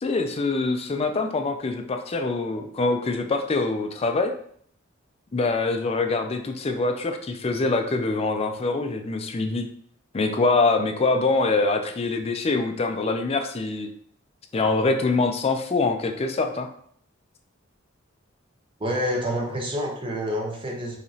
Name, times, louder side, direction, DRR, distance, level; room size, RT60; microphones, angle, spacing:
voice 1, 0.0-4.3 5.3-9.7 10.1-13.9 14.5-16.7, left 3 dB, 30° left, 5 dB, 0.4 m, -24 dB
voice 2, 18.8-21.0, equal, 25° right, -1 dB, 0.9 m, -28 dB
4.9 x 2.9 x 2.8 m, 0.62 s
head